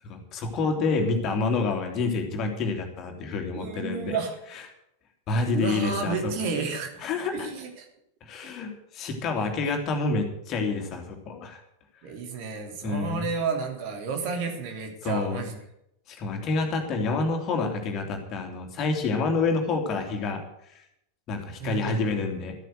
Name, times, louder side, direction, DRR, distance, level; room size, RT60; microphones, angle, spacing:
voice 1, 0.0-4.2 5.3-6.3 7.0-7.5 8.2-11.6 12.8-13.3 15.0-15.4 16.1-20.4 20.7-20.8 21.3-22.5, left 3 dB, 35° left, 4 dB, 2.9 m, -28 dB
voice 2, 3.5-4.4 5.4-6.9 7.3-7.8 9.4-9.5 12.0-15.5 21.6-22.3, right 5 dB, 45° right, 3 dB, 3.2 m, -32 dB
13.5 x 9.3 x 7.9 m, 0.78 s
figure-of-eight pair, 90°, 0 cm